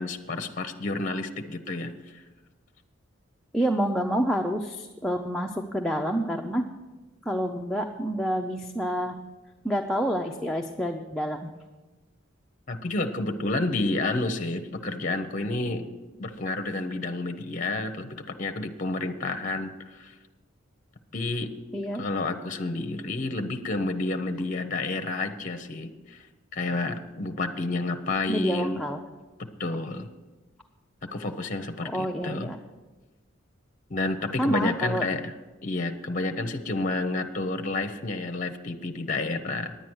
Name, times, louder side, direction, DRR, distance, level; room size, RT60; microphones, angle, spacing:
voice 1, 0.0-2.2 12.7-15.9 16.2-20.1 21.1-21.5 22.0-26.2 26.5-28.8 29.4-30.1 31.0-32.5 33.9-35.3 35.6-39.8, left 2 dB, 40° left, 7 dB, 0.6 m, -30 dB
voice 2, 3.5-6.6 7.3-9.2 9.6-11.5 21.7-22.0 28.3-29.0 31.8-32.6 34.4-35.0, equal, ahead, 1 dB, 0.5 m, -28 dB
10.0 x 9.0 x 6.2 m, 1.2 s
head